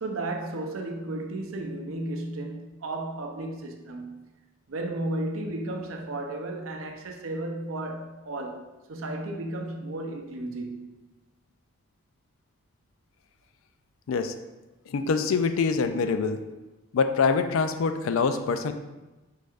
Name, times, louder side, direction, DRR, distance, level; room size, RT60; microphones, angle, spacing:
voice 1, 0.0-4.2 4.7-10.9, right 2 dB, 80° right, 0.6 m, -34 dB
voice 2, 14.9-16.4 16.9-18.7, left 5 dB, 75° left, 0.4 m, -25 dB
4.7 x 4.6 x 2.4 m
head